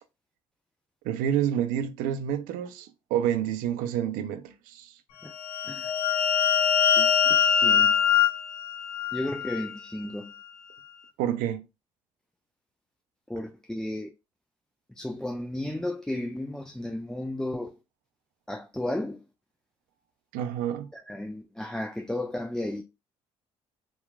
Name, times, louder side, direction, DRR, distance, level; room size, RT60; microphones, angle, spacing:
voice 1, 1.0-4.9 11.2-11.7 20.3-20.9, right 10 dB, 75° right, 0.4 m, -28 dB
sound 1, 5.3-9.8, left 7 dB, 90° left, 0.5 m, -23 dB
voice 2, 7.0-8.0 9.1-10.3 13.3-14.1 14.9-17.8 18.5-19.2 20.9-22.8, left 1 dB, 5° left, 0.3 m, -34 dB
2.9 x 2.3 x 2.3 m
hypercardioid pair, 55°, 14 cm